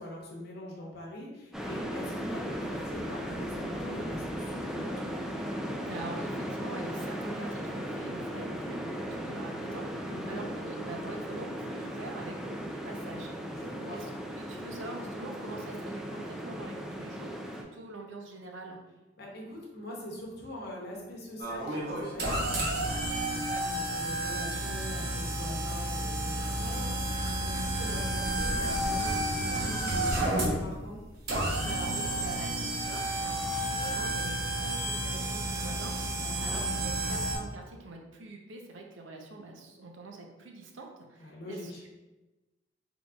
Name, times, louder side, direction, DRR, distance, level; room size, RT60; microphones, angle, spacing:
voice 1, 0.0-5.2 10.1-10.5 13.5-14.0 19.2-31.0 36.1-36.6 41.2-41.8, left 1 dB, 55° left, -2 dB, 1.0 m, -43 dB
sound 1, 1.5-17.6, equal, 5° right, 0.3 m, -37 dB
voice 2, 5.8-13.6 13.9-18.8 31.6-41.9, right 2 dB, 85° right, 1 dB, 0.6 m, -44 dB
sound 2, 21.4-37.3, right 1 dB, 55° right, 0.9 m, -31 dB
3.8 x 3.8 x 2.3 m, 1.1 s
head